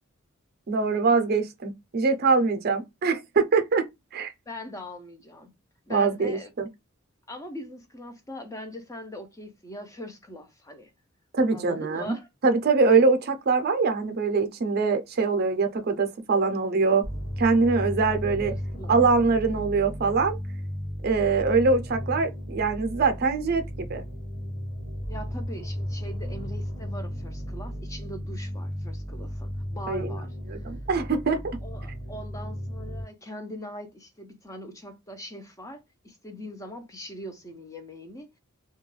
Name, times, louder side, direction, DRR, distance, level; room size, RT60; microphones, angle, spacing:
voice 1, 0.7-3.9 4.1-4.3 5.9-6.7 11.3-12.1 12.4-17.0 17.4-18.5 18.9-20.4 21.0-23.6 23.9-24.0 29.9-30.1 30.5-31.6, right 4 dB, 50° right, 0.5 m, -23 dB
voice 2, 4.5-5.5 5.9-6.5 7.3-10.9 11.5-12.3 18.4-19.0 25.1-30.6 31.6-38.4, left 1 dB, 15° left, 0.5 m, -41 dB
sound 1, 17.0-33.0, equal, 70° left, 0.8 m, -34 dB
2.3 x 2.1 x 3.1 m
head